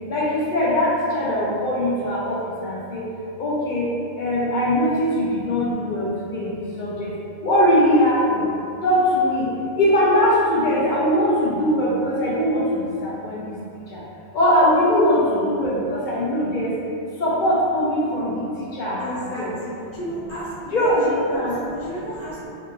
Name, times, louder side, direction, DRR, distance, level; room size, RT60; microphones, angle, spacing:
voice 1, 0.1-3.0 3.4-7.1 7.4-8.5 8.8-9.5 9.8-13.5 13.9-14.0 14.3-16.8 17.2-19.5 20.7-21.6, equal, 60° left, -6 dB, 0.5 m, -21 dB
voice 2, 19.0-22.5, equal, 20° right, -12 dB, 0.4 m, -33 dB
2.9 x 2.3 x 2.4 m, 2.6 s
omnidirectional pair, 1.2 m